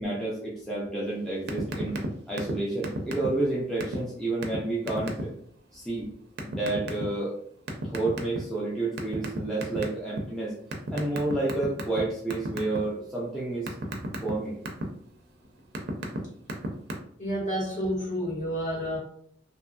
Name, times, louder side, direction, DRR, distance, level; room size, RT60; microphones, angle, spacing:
voice 1, 0.0-1.9 2.3-5.3 5.7-6.1 6.4-7.4 7.8-10.6 10.9-13.7 14.2-14.6, right 2 dB, 5° left, -7 dB, 0.5 m, -30 dB
sound 1, 1.5-2.1 2.4-2.6 2.8-3.5 3.8-4.0 4.4-4.6 4.9-5.2 6.4-7.0 7.7-8.6 9.0-10.2 10.7-12.0 12.3-12.8 13.2-14.8 15.4-16.2 16.4-16.9, right 2 dB, 60° right, 0.5 m, -32 dB
voice 2, 17.2-19.0, equal, 40° left, -6 dB, 1.5 m, -29 dB
2.9 x 2.6 x 2.3 m, 0.63 s
head